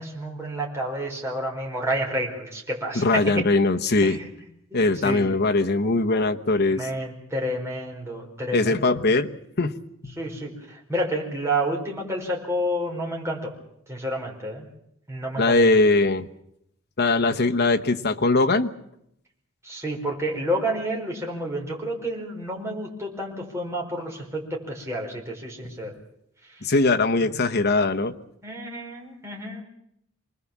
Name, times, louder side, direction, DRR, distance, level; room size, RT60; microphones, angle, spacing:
voice 1, 0.0-3.2 4.0-4.3 4.7-5.3 6.7-8.8 10.2-13.5 13.9-14.7 15.1-15.6 19.6-25.9 28.4-29.6, right 1 dB, 15° right, -2 dB, 5.0 m, -30 dB
voice 2, 2.9-4.2 4.7-6.9 8.5-9.3 9.6-9.7 10.0-10.1 15.4-16.3 17.0-18.7 26.6-28.1, left 3 dB, 50° left, 5 dB, 1.2 m, -21 dB
26.0 x 20.0 x 7.4 m, 0.76 s
head